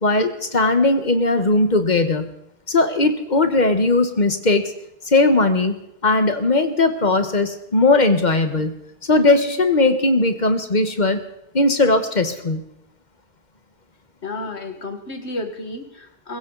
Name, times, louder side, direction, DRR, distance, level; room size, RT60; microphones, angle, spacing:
voice 1, 0.0-2.3 2.7-4.7 5.1-8.7 9.1-11.2 11.5-12.6, left 2 dB, 45° left, 8 dB, 1.5 m, -18 dB
voice 2, 14.2-16.4, left 2 dB, 80° left, 6 dB, 2.1 m, -31 dB
22.0 x 16.0 x 4.0 m, 0.82 s
omnidirectional pair, 1.1 m